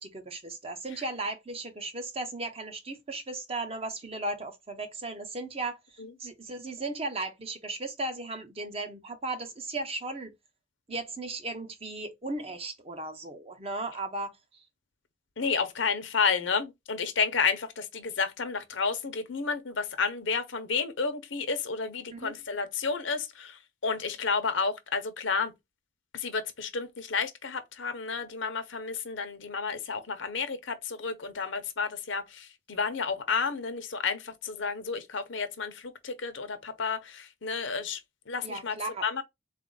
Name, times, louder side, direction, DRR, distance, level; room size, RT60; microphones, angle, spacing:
voice 1, 0.0-10.3 10.9-14.6 22.1-22.3 38.4-39.0, right 2 dB, 30° right, 0.7 m, -36 dB
voice 2, 15.4-25.5 26.1-38.0 38.3-38.8 39.0-39.2, left 5 dB, 70° left, 0.8 m, -31 dB
4.0 x 2.5 x 3.8 m
head